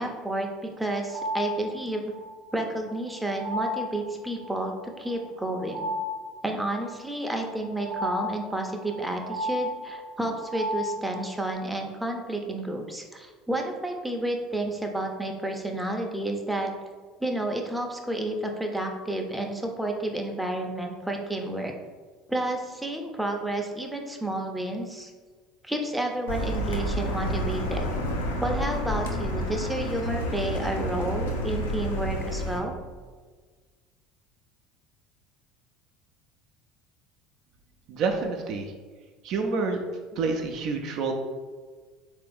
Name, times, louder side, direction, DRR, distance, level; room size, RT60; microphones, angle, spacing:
voice 1, 0.0-2.1 2.5-5.9 6.4-16.7 17.2-21.7 22.3-25.1 25.6-27.9 28.4-32.7, right 1 dB, 5° right, 2 dB, 0.6 m, -30 dB
sound 1, 0.8-11.5, left 1 dB, 65° left, 1.0 m, -35 dB
Car, 26.3-32.6, equal, 80° left, 0.5 m, -29 dB
voice 2, 37.9-38.7 39.2-39.8 40.1-41.1, right 4 dB, 55° right, 3 dB, 0.4 m, -28 dB
3.7 x 2.6 x 3.5 m, 1.5 s
hypercardioid pair, 70°, 0 cm